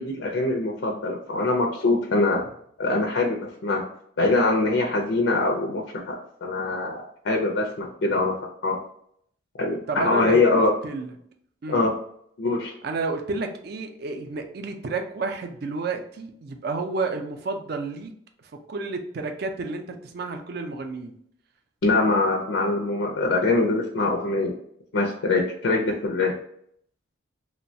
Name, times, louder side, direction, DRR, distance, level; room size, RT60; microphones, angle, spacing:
voice 1, 0.0-2.5 2.8-3.9 4.2-8.8 9.6-10.7 11.7-11.9 12.4-12.7 21.8-24.5 24.9-26.3, left 3 dB, 85° left, 1 dB, 0.5 m, -23 dB
voice 2, 9.9-11.1 11.6-11.8 12.8-18.1 18.5-21.1, right 3 dB, 55° right, 6 dB, 0.4 m, -31 dB
3.0 x 2.1 x 2.6 m, 0.67 s
head